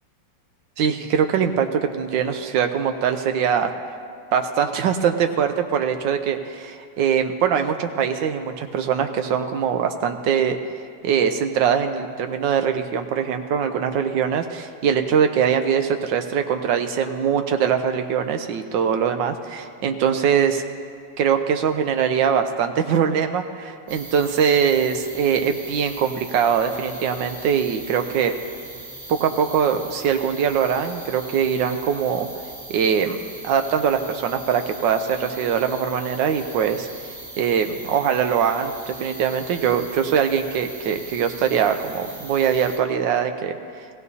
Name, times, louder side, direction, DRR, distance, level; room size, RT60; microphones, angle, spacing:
voice 1, 0.8-3.7 4.3-10.6 11.0-20.6 21.2-28.3 29.1-32.3 32.7-33.2 33.4-36.9 37.4-43.6, right 7 dB, 80° right, 7 dB, 1.4 m, -22 dB
sound 1, 23.9-42.8, right 2 dB, 45° right, 2.6 m, -40 dB
19.5 x 15.5 x 2.7 m, 2.2 s
omnidirectional pair, 2.0 m